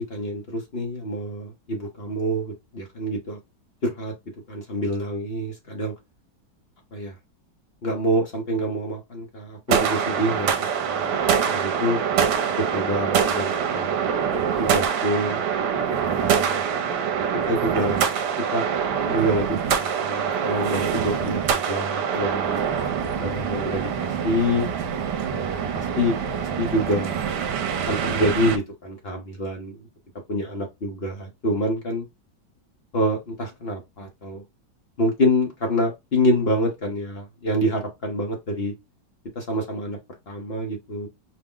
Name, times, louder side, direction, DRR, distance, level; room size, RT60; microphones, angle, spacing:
voice 1, 0.0-3.4 3.8-4.1 4.5-5.9 6.9-7.1 7.8-11.1 11.5-12.0 12.6-14.0 14.6-15.4 16.0-16.6 17.5-18.0 18.5-18.6 19.1-22.6 23.2-24.7 25.3-27.2 27.9-29.9 30.3-32.0 32.9-34.4 35.0-38.7 39.3-40.0 40.3-41.1, equal, 50° left, 0.8 m, -26 dB
sound 1, 9.7-28.6, right 7 dB, 75° right, 1.2 m, -25 dB
4.7 x 2.1 x 3.7 m
omnidirectional pair, 1.9 m